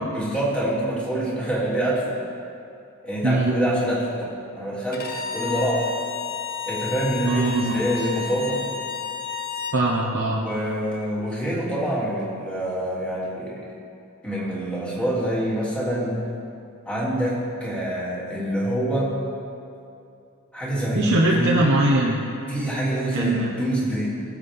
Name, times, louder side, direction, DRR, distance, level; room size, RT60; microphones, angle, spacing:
voice 1, 0.1-2.2 3.0-5.9 6.7-8.6 10.4-13.7 14.2-16.2 16.8-19.2 20.5-21.6 22.5-24.1, right 1 dB, 5° left, -8 dB, 3.0 m, -26 dB
voice 2, 3.2-3.5 7.2-7.8 9.7-10.4 20.9-22.2 23.1-23.6, right 1 dB, 60° right, -3 dB, 1.1 m, -21 dB
Bowed string instrument, 4.9-9.8, left 6 dB, 45° left, 1.0 m, -31 dB
20.5 x 7.6 x 3.7 m, 2.6 s
head